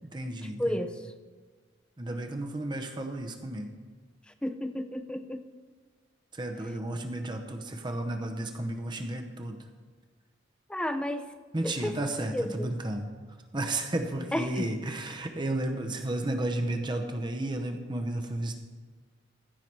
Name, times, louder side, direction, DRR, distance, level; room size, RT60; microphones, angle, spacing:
voice 1, 0.0-0.8 2.0-3.7 6.3-9.6 11.5-13.1 13.5-18.6, right 1 dB, 25° right, 4 dB, 0.7 m, -33 dB
voice 2, 0.6-0.9 4.4-5.4 10.7-11.3 11.6-11.9 12.3-12.7 14.3-14.7, left 1 dB, 5° left, 9 dB, 0.4 m, -31 dB
15.0 x 5.8 x 4.6 m, 1.5 s
head